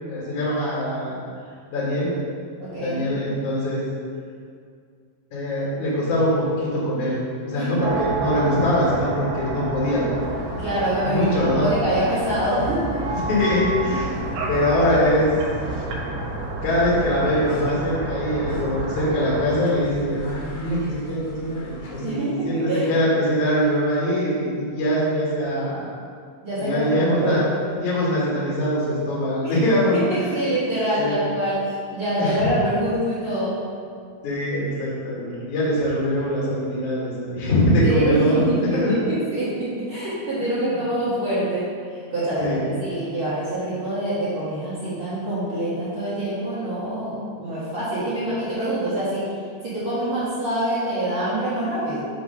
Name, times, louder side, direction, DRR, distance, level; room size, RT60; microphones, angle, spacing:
voice 1, 0.1-1.2 1.7-2.1 2.7-3.8 5.3-7.2 7.4-10.1 11.0-11.7 13.1-14.2 14.5-15.7 16.6-22.2 22.5-25.9 26.6-27.4 27.8-30.5 31.0-31.2 32.2-32.5 34.2-39.1 40.6-40.7 42.4-42.8, equal, 55° left, -7 dB, 2.3 m, -23 dB
voice 2, 2.6-3.1 7.6-7.8 10.6-13.0 22.0-22.9 26.4-27.4 29.4-29.5 29.9-33.6 37.8-49.3 49.6-52.0, right 1 dB, 55° right, -12 dB, 1.4 m, -25 dB
sound 1, 7.8-19.5, right 3 dB, 80° right, 3.2 m, -30 dB
sound 2, 10.2-22.2, right 1 dB, 90° left, 3.5 m, -38 dB
7.0 x 4.4 x 5.5 m, 2.2 s
omnidirectional pair, 5.2 m